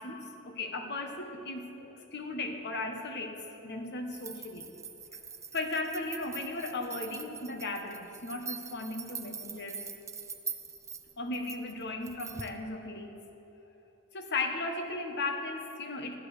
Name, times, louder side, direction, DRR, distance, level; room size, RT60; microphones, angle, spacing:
voice 1, 0.0-4.7 5.5-9.9 11.2-13.2 14.1-16.2, left 2 dB, 50° left, 4 dB, 1.3 m, -36 dB
sound 1, 4.1-12.6, right 6 dB, 15° right, 0.5 m, -43 dB
15.0 x 11.0 x 6.4 m, 3.0 s
head